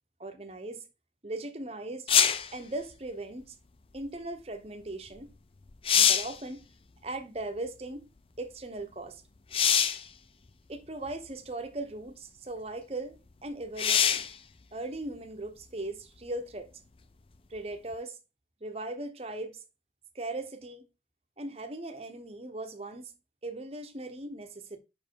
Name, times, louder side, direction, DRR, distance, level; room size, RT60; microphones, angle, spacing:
voice 1, 0.2-0.8 1.2-2.1 2.5-3.5 3.9-5.3 5.9-6.6 7.0-8.1 8.4-9.2 10.7-14.3 14.7-16.7 17.5-18.2 18.6-19.6 20.1-20.9 21.4-23.1 23.4-24.8, right 2 dB, 35° right, 1.0 m, -38 dB
sound 1, 2.1-2.5 5.2-5.3 5.7-6.4 9.5-10.1 11.1-11.2 13.8-14.3 17.9-18.0, left 8 dB, 30° left, 0.5 m, -24 dB
5.6 x 4.6 x 4.7 m
head